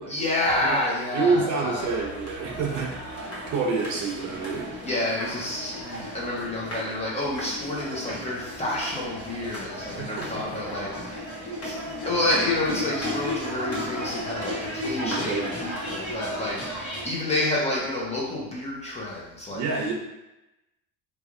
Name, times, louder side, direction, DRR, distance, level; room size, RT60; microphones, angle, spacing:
voice 1, 0.1-1.9 4.8-11.3 11.6-19.6, left 2 dB, 20° left, -5 dB, 0.8 m, -29 dB
voice 2, 1.1-3.2 3.5-4.7 10.0-10.4 14.9-15.6 19.5-19.9, right 4 dB, 55° right, 0 dB, 0.8 m, -28 dB
sound 1, 1.8-17.1, equal, 40° left, 1.1 m, -34 dB
3.2 x 2.4 x 3.7 m, 0.96 s
cardioid pair, 140°, 35 cm